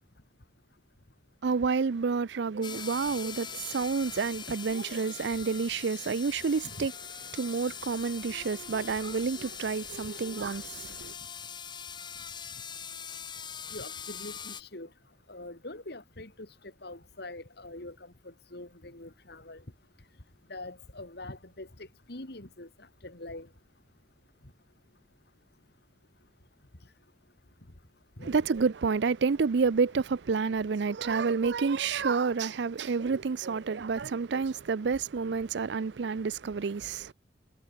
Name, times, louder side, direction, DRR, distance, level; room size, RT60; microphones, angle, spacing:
voice 1, 1.4-6.9 7.3-11.1 28.2-37.1, right 5 dB, 60° right, 0.5 m, -29 dB
sound 1, 2.6-14.6, left 7 dB, 25° left, 1.1 m, -42 dB
voice 2, 13.7-14.9 15.3-16.3 16.8-17.9 18.5-19.6 20.5-21.7 22.1-22.7 23.0-23.5 28.2-28.3, left 2 dB, 55° left, 2.4 m, -43 dB
head